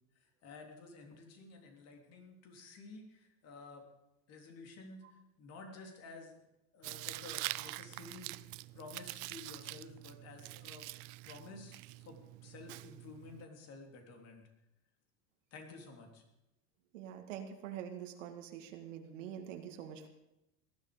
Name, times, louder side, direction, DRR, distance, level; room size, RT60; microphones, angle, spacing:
voice 1, 0.2-3.9 4.3-6.4 6.7-8.4 8.7-10.9 11.2-14.5 15.5-16.2, left 3 dB, 45° left, 3 dB, 3.4 m, -52 dB
Tearing, 6.8-13.4, right 23 dB, 55° right, 0.5 m, -45 dB
voice 2, 16.9-20.1, right 9 dB, 90° right, 4 dB, 2.1 m, -45 dB
18.5 x 11.5 x 5.2 m, 0.92 s
supercardioid pair, 130°, 36 cm